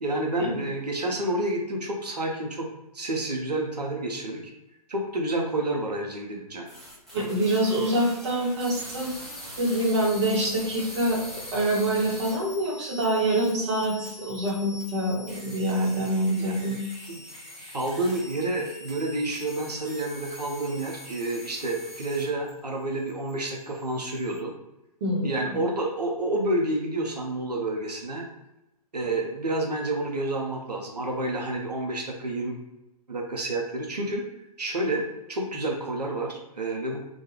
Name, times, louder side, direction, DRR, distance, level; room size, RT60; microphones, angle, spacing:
voice 1, 0.0-2.7 2.9-4.4 4.9-6.7 16.4-16.5 17.1-17.2 17.7-24.5 25.2-28.2 28.9-32.6 33.1-34.2 34.6-35.0 35.3-37.0, right 2 dB, 80° right, 0 dB, 0.6 m, -29 dB
sound 1, 6.7-22.5 22.8-24.4, left 1 dB, ahead, 0.4 m, -43 dB
voice 2, 7.1-9.1 9.6-11.2 11.5-16.8 25.0-25.6, right 1 dB, 45° right, -3 dB, 0.9 m, -26 dB
2.2 x 2.2 x 3.0 m, 0.93 s
figure-of-eight pair, 125°, 20 cm